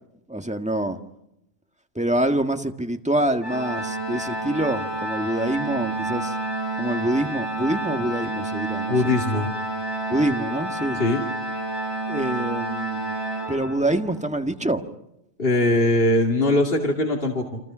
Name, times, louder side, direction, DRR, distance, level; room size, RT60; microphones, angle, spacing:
voice 1, 0.3-1.0 2.0-6.4 6.8-9.1 10.1-11.0 12.1-13.2 13.5-14.8, right 1 dB, 5° right, 5 dB, 1.7 m, -25 dB
Organ, 3.4-14.2, right 2 dB, 25° right, 7.5 m, -29 dB
voice 2, 8.9-9.5 10.9-11.2 15.4-17.6, left 2 dB, 60° left, 1 dB, 2.6 m, -21 dB
29.5 x 26.5 x 6.2 m, 0.83 s
omnidirectional pair, 1.1 m